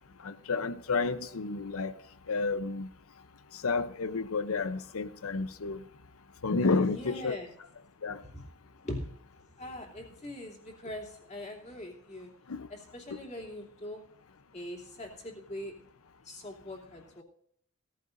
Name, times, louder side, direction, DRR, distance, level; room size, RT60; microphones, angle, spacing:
voice 1, 0.2-1.9 2.3-2.9 3.6-5.8 6.4-7.4 8.0-8.2 12.5-12.7, left 4 dB, 85° left, 0.8 m, -30 dB
voice 2, 6.8-7.5 8.2-8.4 8.8-9.1 9.6-12.3 12.7-14.0 14.5-15.8 16.2-17.2, left 1 dB, 35° left, 3.0 m, -42 dB
17.5 x 14.5 x 2.6 m
head